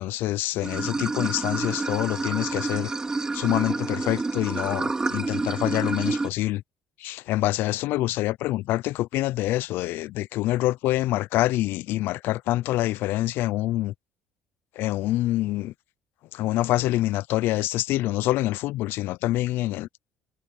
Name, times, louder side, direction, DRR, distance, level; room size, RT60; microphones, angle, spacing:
voice 1, 0.0-2.9 3.3-6.6 7.0-13.9 14.8-15.7 16.3-19.9, left 16 dB, 75° left, 0.5 m, -26 dB
Water / Sink (filling or washing), 0.6-6.3, right 3 dB, 20° right, 2.4 m, -29 dB
cardioid pair, 110°, 4 cm